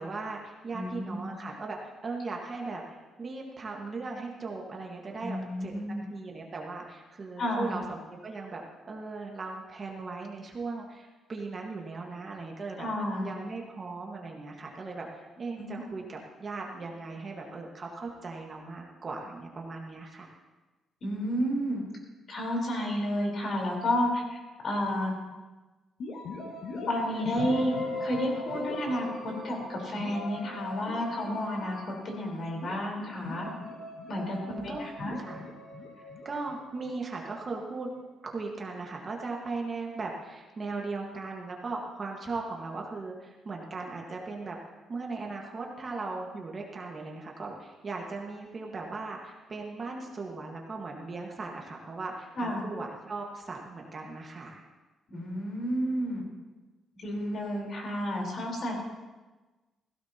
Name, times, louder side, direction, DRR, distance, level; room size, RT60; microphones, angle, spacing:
voice 1, 0.0-5.7 6.1-8.6 8.9-12.9 13.2-20.4 34.3-34.9 35.2-35.4 36.0-37.9 38.2-54.6, right 3 dB, 30° right, 0 dB, 1.6 m, -38 dB
voice 2, 0.7-1.3 5.2-6.0 7.4-7.7 12.8-13.3 15.6-15.8 21.0-21.8 22.3-25.1 26.9-33.5 34.1-35.2 52.4-52.7 55.1-56.2 57.0-58.8, equal, 45° left, -1 dB, 4.1 m, -31 dB
sound 1, 26.0-37.7, left 2 dB, 65° left, 2.0 m, -39 dB
17.0 x 16.0 x 2.9 m, 1.2 s
cardioid pair, 150°, 0 cm